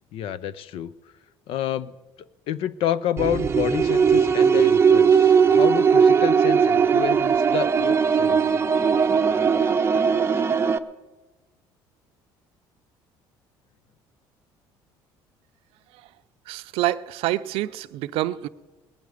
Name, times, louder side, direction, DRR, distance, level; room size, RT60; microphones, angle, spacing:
voice 1, 0.1-0.9 1.5-1.9 2.5-8.4, left 10 dB, 70° left, 0.6 m, -29 dB
sound 1, 3.2-10.8, right 6 dB, 25° right, 0.6 m, -19 dB
voice 2, 16.5-18.5, right 15 dB, 80° right, 0.5 m, -27 dB
21.0 x 9.3 x 5.0 m
cardioid pair, 110°, 10 cm